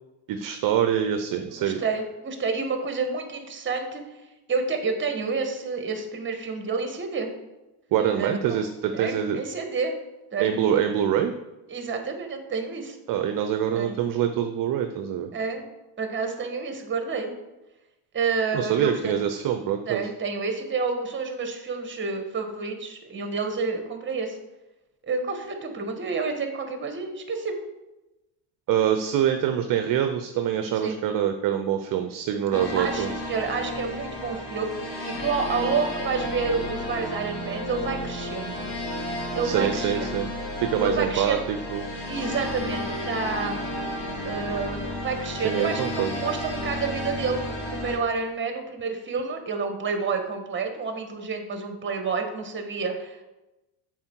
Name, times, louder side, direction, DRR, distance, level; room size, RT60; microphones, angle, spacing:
voice 1, 0.3-1.8 7.9-9.4 10.4-11.3 13.1-15.3 18.5-20.0 28.7-33.1 39.4-40.3 40.6-41.9 45.4-46.1, right 9 dB, 45° right, 7 dB, 0.7 m, -25 dB
voice 2, 1.5-4.0 4.5-7.3 8.2-8.6 8.9-9.9 10.3-10.6 11.7-13.0 13.7-14.0 15.3-15.7 16.0-17.3 18.1-19.1 19.9-24.4 25.0-27.6 30.8-31.0 32.8-38.7 39.3-40.3 40.8-41.4 42.1-43.6 44.2-53.2, right 4 dB, 25° right, 5 dB, 1.4 m, -29 dB
sound 1, 32.5-48.0, left 1 dB, 50° left, 2.4 m, -32 dB
7.2 x 4.7 x 4.5 m, 1.0 s
supercardioid pair, 90°, 45 cm